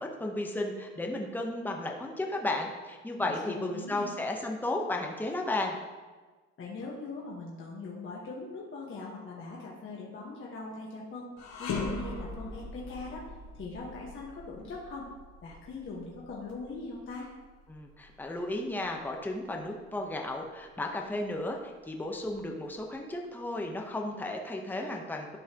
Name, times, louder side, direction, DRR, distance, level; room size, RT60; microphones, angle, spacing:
voice 1, 0.0-5.8 17.7-25.4, left 2 dB, 5° left, 1 dB, 0.9 m, -34 dB
voice 2, 3.2-4.1 6.6-11.3 11.6-13.3 13.5-15.1 15.4-17.3, left 3 dB, 45° left, -4 dB, 1.4 m, -41 dB
sound 1, 11.4-20.6 21.0-21.2 22.1-23.0, left 3 dB, 70° left, 1.3 m, -41 dB
11.0 x 5.6 x 2.9 m, 1.3 s
cardioid pair, 115°, 29 cm